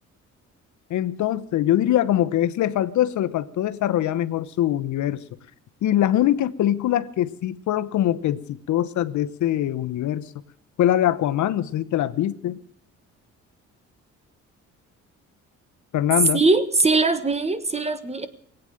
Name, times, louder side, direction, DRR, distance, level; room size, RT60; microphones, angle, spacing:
voice 1, 0.9-5.2 5.8-10.2 10.8-12.6 15.9-16.4, left 12 dB, 70° left, 13 dB, 0.9 m, -23 dB
voice 2, 16.3-18.3, right 3 dB, 20° right, 12 dB, 1.4 m, -21 dB
19.5 x 9.0 x 7.7 m, 0.65 s
cardioid pair, 90°, 30 cm